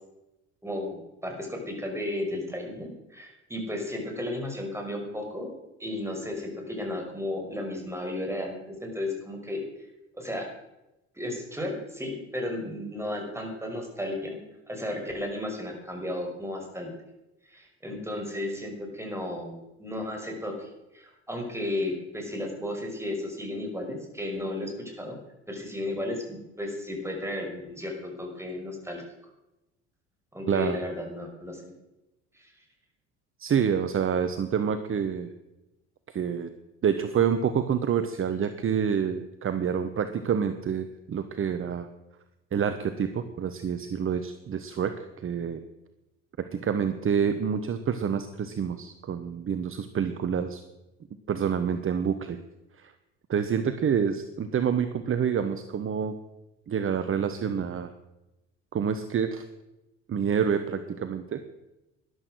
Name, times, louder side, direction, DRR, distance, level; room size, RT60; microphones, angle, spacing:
voice 1, 0.6-5.5 5.8-9.6 10.2-10.5 11.2-14.4 14.7-16.9 17.5-25.2 25.5-29.0 30.3-31.7 32.3-32.5, left 1 dB, 5° right, 2 dB, 5.6 m, -34 dB
voice 2, 30.5-30.8 33.4-35.3 36.1-36.5 36.8-41.9 42.5-45.6 46.5-50.6 51.3-52.4 52.7-52.9 53.3-56.1 56.7-57.9 58.7-59.4 60.1-61.4, right 7 dB, 35° right, 10 dB, 1.1 m, -27 dB
13.0 x 11.5 x 6.3 m, 0.96 s
hypercardioid pair, 65°, 36 cm